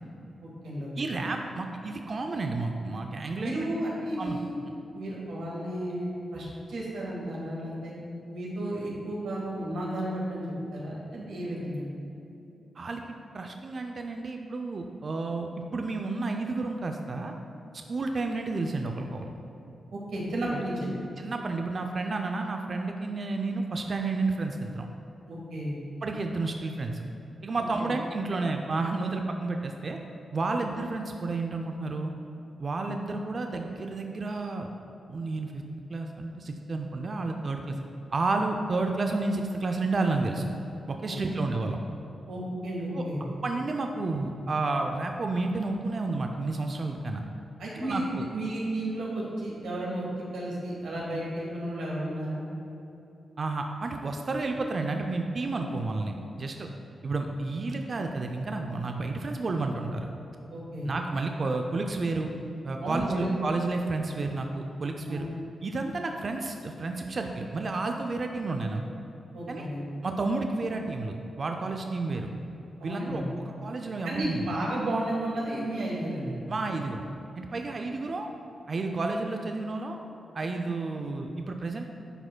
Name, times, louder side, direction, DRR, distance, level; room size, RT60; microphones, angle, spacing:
voice 1, 0.4-1.2 3.4-4.5 4.9-7.9 8.3-11.9 19.9-20.9 25.3-25.8 27.8-27.9 41.1-41.4 42.3-43.2 47.6-48.0 48.3-50.0 50.3-52.4 60.5-60.9 62.8-63.3 65.1-65.2 69.3-69.8 72.8-73.3 74.0-76.4, right 1 dB, 80° right, -5 dB, 1.5 m, -33 dB
voice 2, 1.0-3.7 4.2-4.4 12.8-13.0 13.3-17.3 17.9-19.3 20.5-20.6 21.2-24.9 26.0-27.0 27.4-30.0 30.3-32.1 32.6-34.7 35.1-35.6 35.9-37.8 38.1-40.5 40.9-41.8 42.9-43.0 43.4-47.3 47.9-48.2 53.4-56.7 57.0-60.1 60.9-62.3 62.6-65.2 65.6-68.8 69.5-69.7 70.0-72.3 72.8-74.5 76.5-77.0 77.4-78.3 78.7-80.0 80.3-81.9, right 3 dB, 55° right, 3 dB, 0.4 m, -31 dB
9.8 x 4.8 x 2.2 m, 2.9 s
supercardioid pair, 40°, 0 cm